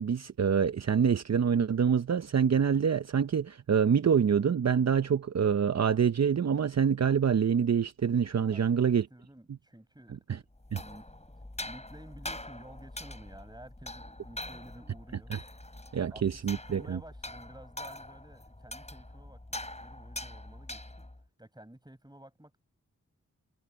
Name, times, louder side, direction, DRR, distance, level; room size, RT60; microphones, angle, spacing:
voice 1, 0.0-9.1 10.3-10.4 10.7-10.8 15.3-15.4 15.9-17.0, right 7 dB, 55° right, 0.7 m, -26 dB
voice 2, 8.5-11.1 11.6-15.3 16.1-19.4 19.8-21.0 21.4-22.6, right 1 dB, 15° right, 6.9 m, -52 dB
sound 1, 10.5-21.2, left 1 dB, 20° left, 6.8 m, -44 dB
cardioid pair, 50°, 31 cm